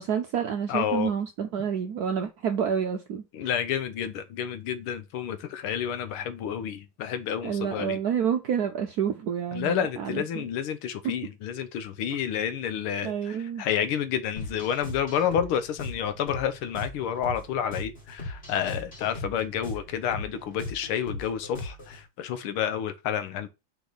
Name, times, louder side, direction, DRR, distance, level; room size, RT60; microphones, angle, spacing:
voice 1, 0.0-3.2 7.4-10.2 13.0-13.6, right 7 dB, 70° right, 0.9 m, -28 dB
voice 2, 0.7-1.1 3.3-8.0 9.5-23.5, left 9 dB, 85° left, 1.7 m, -30 dB
sound 1, 14.4-22.0, left 2 dB, 30° left, 2.4 m, -39 dB
5.1 x 4.0 x 5.9 m
omnidirectional pair, 2.3 m